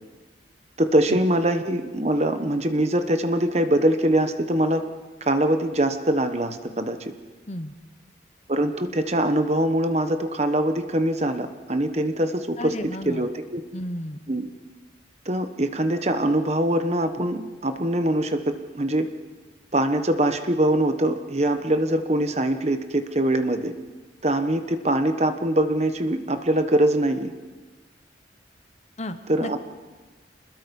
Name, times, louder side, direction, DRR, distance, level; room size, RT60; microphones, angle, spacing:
voice 1, 0.8-4.8 5.2-7.0 8.5-12.7 13.1-13.6 14.3-14.5 15.2-19.1 19.7-23.7 24.2-27.3 29.3-29.6, right 1 dB, 35° right, 8 dB, 1.2 m, -23 dB
voice 2, 12.6-13.3 13.7-14.2 29.0-29.5, left 1 dB, 35° left, 9 dB, 1.0 m, -33 dB
27.0 x 21.0 x 5.4 m, 1.3 s
head